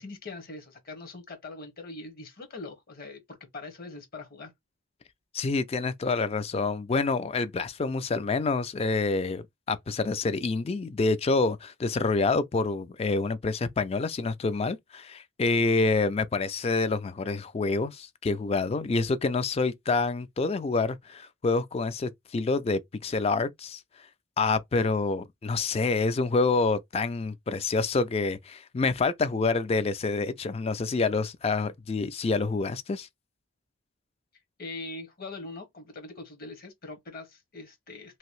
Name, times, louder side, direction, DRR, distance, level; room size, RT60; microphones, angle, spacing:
voice 1, 0.0-4.5 34.6-38.2, left 3 dB, 45° left, 1.0 m, -42 dB
voice 2, 5.3-23.8 24.4-33.1, left 3 dB, 30° left, 0.3 m, -27 dB
2.9 x 2.6 x 3.1 m
head